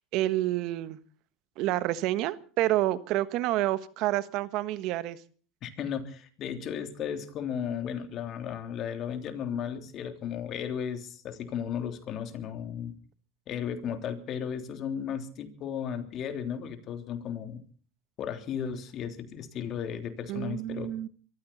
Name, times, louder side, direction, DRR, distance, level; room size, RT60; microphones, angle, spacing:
voice 1, 0.1-1.0 1.6-5.2 20.3-21.1, right 15 dB, 60° right, 14 dB, 1.4 m, -28 dB
voice 2, 5.6-12.9 13.5-17.6 18.2-20.9, left 8 dB, 50° left, 7 dB, 3.3 m, -35 dB
23.5 x 14.5 x 4.2 m, 0.42 s
supercardioid pair, 95°, 0 cm